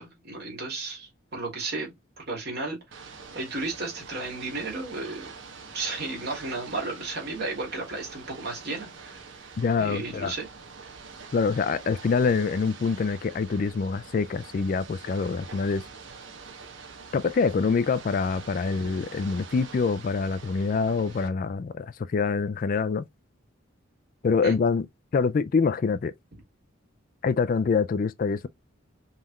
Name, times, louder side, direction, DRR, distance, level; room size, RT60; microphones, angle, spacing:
voice 1, 0.0-2.8 3.3-5.3 5.7-9.4 9.8-10.5 18.8-18.9 24.4-24.5, right 3 dB, 55° right, 2.7 m, -34 dB
Ocean / Boat Water vehicle, 2.9-21.3, right 5 dB, 70° right, 1.1 m, -45 dB
voice 2, 9.6-10.3 11.3-15.8 17.1-23.0 24.2-24.9 25.1-26.1 27.2-28.5, left 5 dB, 45° left, 0.3 m, -25 dB
5.5 x 3.2 x 2.3 m
head